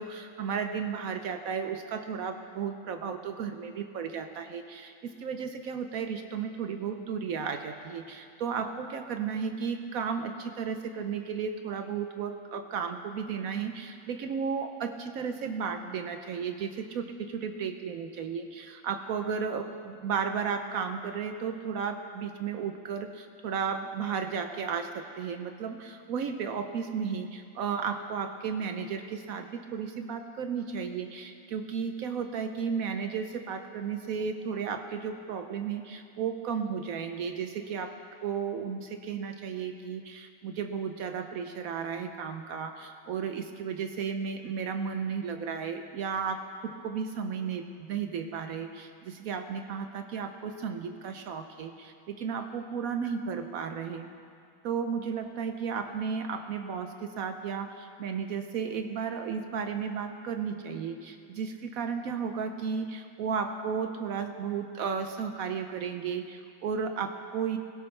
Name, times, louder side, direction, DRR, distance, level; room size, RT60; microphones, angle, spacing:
voice 1, 0.0-37.9 38.2-54.1 54.6-67.6, right 6 dB, 80° right, 7 dB, 0.7 m, -34 dB
17.0 x 16.5 x 3.2 m, 2.3 s
omnidirectional pair, 2.2 m